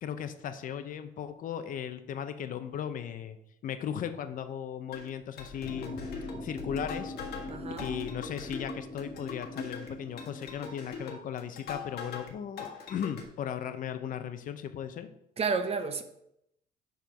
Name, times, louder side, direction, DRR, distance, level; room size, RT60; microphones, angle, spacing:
voice 1, 0.0-3.4 3.6-6.0 6.4-7.1 7.8-15.1, left 9 dB, 55° left, 9 dB, 0.7 m, -37 dB
sound 1, 4.9-12.3 12.6-13.2, left 5 dB, 70° left, 1.6 m, -42 dB
sound 2, 5.6-11.1, left 2 dB, 35° left, 1.5 m, -42 dB
voice 2, 7.5-7.9 15.4-16.0, right 5 dB, 35° right, 8 dB, 0.7 m, -31 dB
7.1 x 4.5 x 5.8 m, 0.81 s
cardioid pair, 110°, 17 cm